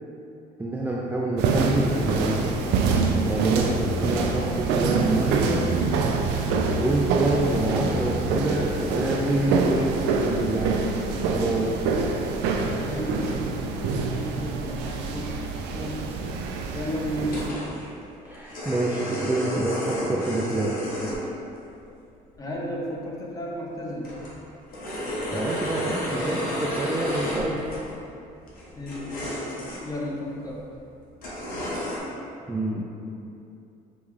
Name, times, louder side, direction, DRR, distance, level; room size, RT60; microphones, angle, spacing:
voice 1, 0.6-2.6 3.2-5.7 6.8-11.0 11.3-11.7 18.2-20.8 25.3-27.6 32.5-32.9, right 1 dB, 10° right, -4 dB, 0.3 m, -27 dB
sound 1, 1.4-17.5, right 4 dB, 90° right, 0.4 m, -25 dB
voice 2, 12.7-15.4 15.7-16.2 16.7-17.6 22.4-24.1 28.8-29.3 29.8-30.6, equal, 20° left, -3 dB, 0.7 m, -33 dB
sound 2, 14.2-14.3 14.8-15.0 15.3-15.4 15.5-15.6 16.2-16.3 17.2-17.9 18.2-21.2 21.6-21.7 23.0-23.1 23.5-23.6 23.9-27.9 28.5-30.0 30.5-30.6 31.2-32.0, equal, 60° left, 1.0 m, -32 dB
5.3 x 2.3 x 3.2 m, 2.7 s
cardioid pair, 110°, 17 cm